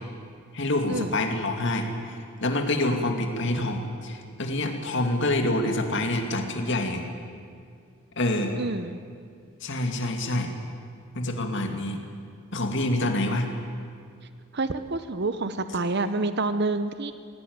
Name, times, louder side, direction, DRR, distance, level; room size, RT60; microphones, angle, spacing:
voice 1, 0.5-7.0 8.2-8.6 9.6-10.5 11.1-12.0 12.5-13.5, left 1 dB, 55° left, 4 dB, 2.4 m, -27 dB
voice 2, 8.6-9.0 14.5-17.1, right 3 dB, 50° right, 11 dB, 0.8 m, -28 dB
21.5 x 17.0 x 9.6 m, 2.3 s
head